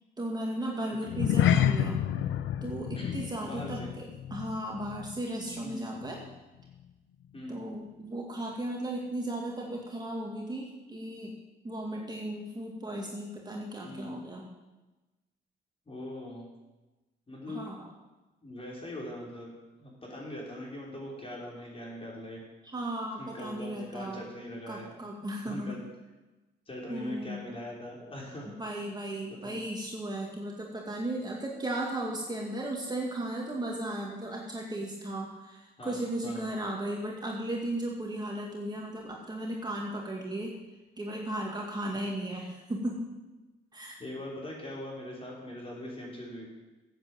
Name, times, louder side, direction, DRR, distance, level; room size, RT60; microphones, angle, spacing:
voice 1, 0.2-2.0 2.6-6.2 7.5-11.3 11.6-14.5 17.5-17.9 22.6-24.2 24.7-25.8 26.9-27.4 28.5-40.6 41.0-43.1 43.7-44.0, right 1 dB, 20° right, -1 dB, 2.4 m, -36 dB
sound 1, 1.1-5.7 6.0-6.3 6.7-6.8, left 10 dB, 80° left, 0.8 m, -29 dB
voice 2, 3.0-3.9 5.6-6.0 7.3-7.6 13.8-14.2 15.9-16.5 17.3-17.7 18.4-19.5 19.8-22.4 23.2-24.9 25.4-25.8 26.7-28.5 29.3-29.6 35.8-36.5 44.0-46.5, left 1 dB, 30° left, -3 dB, 5.4 m, -41 dB
13.0 x 8.5 x 8.1 m, 1.1 s
cardioid pair, 90°, 20 cm